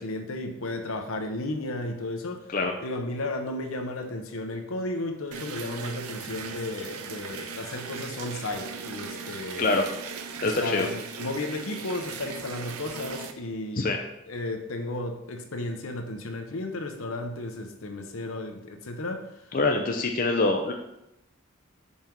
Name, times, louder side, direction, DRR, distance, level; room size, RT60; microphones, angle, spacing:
voice 1, 0.0-2.5 2.8-9.6 10.4-13.8 14.3-19.6, left 2 dB, 70° left, 5 dB, 0.8 m, -34 dB
sound 1, 5.3-13.3, right 5 dB, 90° right, 0.7 m, -39 dB
voice 2, 10.4-10.9 13.8-14.0 19.5-20.7, left 3 dB, 40° left, 2 dB, 0.5 m, -24 dB
5.6 x 5.1 x 4.5 m, 0.86 s
head